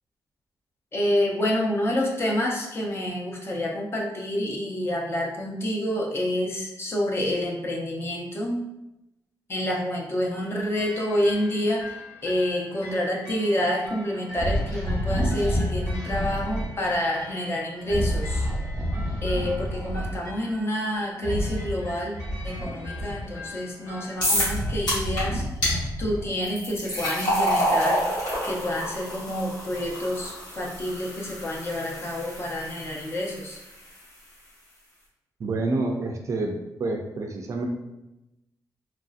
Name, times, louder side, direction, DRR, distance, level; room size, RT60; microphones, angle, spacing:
voice 1, 0.9-8.6 9.5-18.5 19.2-25.7 26.0-28.0 28.4-33.6, left 1 dB, 35° left, -1 dB, 0.5 m, -28 dB
sound 1, 10.3-24.7, left 1 dB, 50° left, 1.2 m, -44 dB
sound 2, 14.3-16.7 17.8-20.2 21.2-23.5 24.0-26.4, equal, 5° left, 1.0 m, -29 dB
sound 3, 24.2-24.6 24.9-25.2 25.6-25.7 26.4-33.6, equal, 90° left, 1.4 m, -28 dB
voice 2, 35.4-37.6, right 2 dB, 45° right, 3 dB, 0.3 m, -28 dB
3.0 x 2.6 x 2.4 m, 0.92 s
wide cardioid pair, 165°, 7 cm